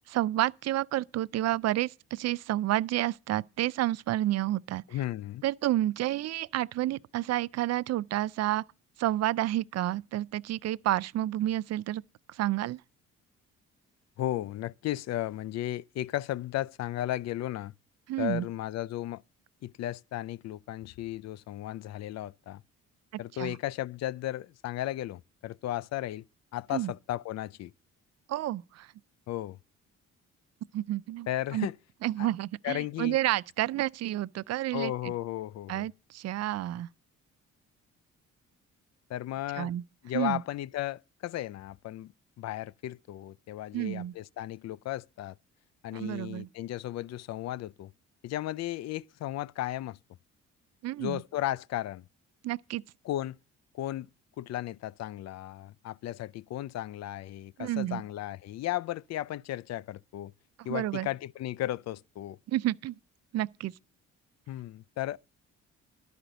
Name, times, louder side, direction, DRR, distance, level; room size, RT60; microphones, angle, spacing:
voice 1, 0.1-4.8 5.4-8.6 9.0-12.0 12.3-12.8 18.1-18.5 23.4-23.6 26.7-26.9 28.3-28.9 30.7-31.3 31.5-31.7 32.0-35.1 35.7-36.9 39.5-39.8 40.1-40.4 43.7-44.1 45.9-46.5 50.8-51.2 52.4-52.8 57.6-58.0 60.7-61.1 62.5-62.9 63.3-63.7, right 14 dB, 60° right, 0.4 m, -30 dB
voice 2, 4.9-5.4 14.2-17.7 18.2-19.2 19.6-22.6 23.2-26.2 26.5-27.7 29.3-29.6 31.3-31.8 32.2-32.3 32.6-33.2 34.7-35.9 39.1-39.7 40.0-42.1 42.4-45.3 45.8-47.9 48.2-50.0 51.0-52.0 53.0-53.4 53.7-54.1 54.4-60.3 60.6-62.4 64.5-65.2, left 14 dB, 60° left, 0.4 m, -35 dB
11.5 x 5.0 x 7.8 m
cardioid pair, 90°, 30 cm